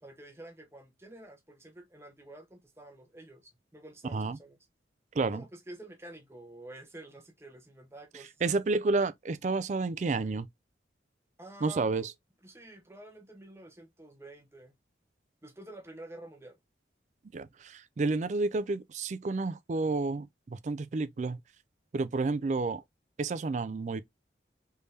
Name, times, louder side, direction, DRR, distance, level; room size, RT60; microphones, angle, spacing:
voice 1, 0.0-4.6 5.3-8.4 11.4-12.1 12.4-14.7 15.4-16.6, right 1 dB, 15° right, 0.8 m, -49 dB
voice 2, 8.4-10.5 11.6-12.1 17.3-21.4 21.9-22.8 23.2-24.0, right 3 dB, 40° right, 0.3 m, -30 dB
3.4 x 3.3 x 2.7 m
head